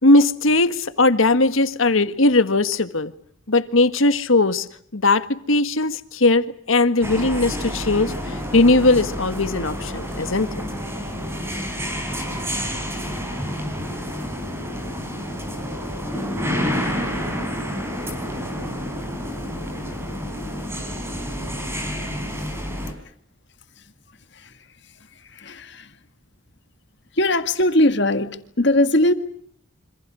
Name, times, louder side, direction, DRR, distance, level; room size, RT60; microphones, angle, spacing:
voice 1, 0.0-3.1 3.5-4.7 4.9-10.5, left 2 dB, 75° left, 1.7 m, -19 dB
sound 1, 7.0-22.9, equal, 10° right, 5.0 m, -29 dB
voice 2, 24.3-24.7 25.2-26.0 27.1-29.1, left 1 dB, 55° left, 1.9 m, -20 dB
28.0 x 26.5 x 6.3 m
head